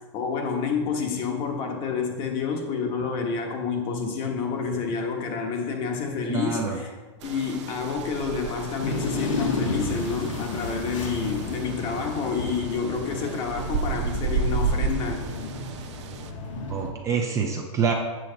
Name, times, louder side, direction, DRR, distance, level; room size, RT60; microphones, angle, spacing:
voice 1, 0.1-6.9 7.2-15.2, left 5 dB, 35° left, 3 dB, 1.2 m, -29 dB
voice 2, 6.3-6.8 16.7-17.9, right 6 dB, 20° right, 2 dB, 0.6 m, -26 dB
sound 1, 7.2-16.3, right 5 dB, 65° right, 0.7 m, -32 dB
sound 2, 8.8-16.9, left 3 dB, 80° left, 1.4 m, -33 dB
7.7 x 6.4 x 3.9 m, 1.3 s
supercardioid pair, 155°, 16 cm